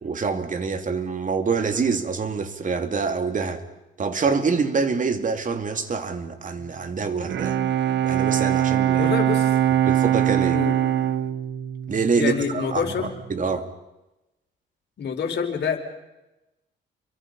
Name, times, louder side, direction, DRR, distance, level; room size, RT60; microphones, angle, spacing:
voice 1, 0.0-3.6 4.0-7.6 8.0-9.1 9.8-10.6 11.9-13.7, right 5 dB, 40° right, 7 dB, 2.9 m, -25 dB
Bowed string instrument, 7.0-12.8, right 11 dB, 65° right, 1.2 m, -22 dB
voice 2, 8.9-9.5 10.5-10.9 12.2-13.1 15.0-15.8, left 6 dB, 60° left, 3 dB, 4.9 m, -27 dB
29.5 x 24.0 x 5.6 m, 0.98 s
cardioid pair, 90°, 20 cm